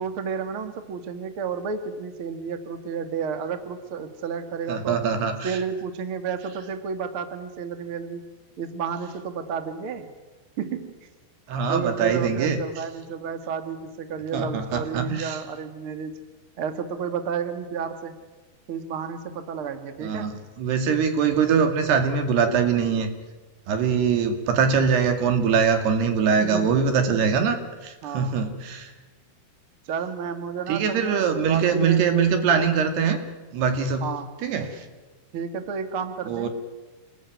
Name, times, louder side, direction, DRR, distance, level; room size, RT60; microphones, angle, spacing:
voice 1, 0.0-5.0 5.4-8.2 8.6-10.1 10.6-11.1 11.7-16.1 16.6-18.1 18.7-20.3 26.4-26.9 28.0-28.4 29.8-32.0 34.0-34.3 35.3-36.5, right 6 dB, 45° right, 9 dB, 1.8 m, -31 dB
voice 2, 4.7-5.6 11.5-12.6 14.3-15.4 20.0-23.1 23.7-28.9 30.7-33.2 33.5-34.1 34.4-34.8 36.3-36.5, right 6 dB, 75° right, 7 dB, 4.4 m, -23 dB
28.0 x 20.5 x 9.4 m, 1.2 s
omnidirectional pair, 4.9 m